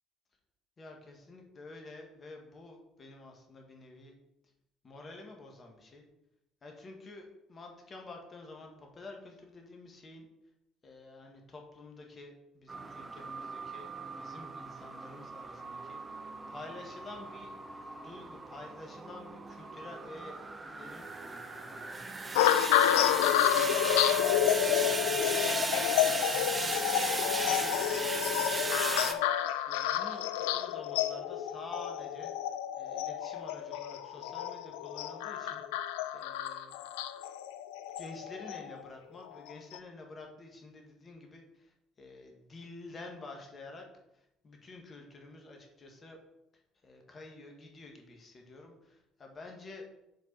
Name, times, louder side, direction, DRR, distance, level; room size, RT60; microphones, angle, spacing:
voice 1, 0.8-4.2 4.8-6.1 6.6-10.3 10.8-20.4 20.7-26.8 27.3-36.8 38.0-43.9 44.1-46.2 46.8-49.9, left 2 dB, 35° left, 2 dB, 1.8 m, -50 dB
sound 1, 12.7-29.1, right 3 dB, 25° right, 0.9 m, -37 dB
sound 2, 22.4-38.8 39.5-39.8, left 11 dB, 70° left, 0.4 m, -30 dB
7.3 x 5.0 x 4.1 m, 0.86 s
figure-of-eight pair, 55°, 0 cm